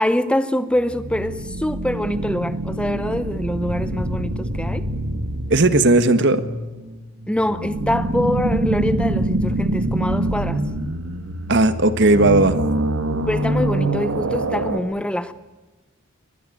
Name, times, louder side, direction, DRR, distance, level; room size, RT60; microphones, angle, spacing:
voice 1, 0.0-4.9 7.3-10.6 13.3-15.3, left 1 dB, 5° left, 12 dB, 0.8 m, -24 dB
sound 1, 0.8-14.8, right 1 dB, 85° right, 2.0 m, -25 dB
voice 2, 5.5-6.4 11.5-12.6, right 2 dB, 55° right, 11 dB, 1.6 m, -15 dB
24.0 x 19.5 x 9.3 m, 1.2 s
head